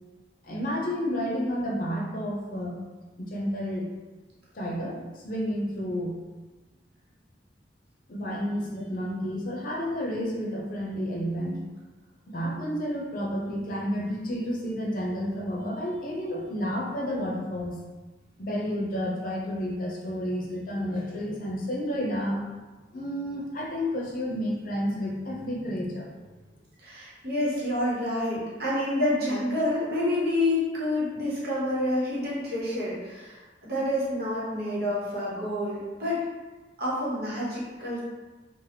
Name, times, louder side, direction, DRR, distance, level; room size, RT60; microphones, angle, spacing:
voice 1, 0.4-2.8 3.2-3.9 4.5-5.0 5.2-6.2 8.1-11.6 12.3-17.8 18.4-22.4 22.9-26.1, equal, 50° left, -3 dB, 0.6 m, -30 dB
voice 2, 26.8-36.2 36.8-38.0, left 1 dB, 60° right, -7 dB, 1.0 m, -28 dB
2.9 x 2.1 x 3.3 m, 1.2 s
head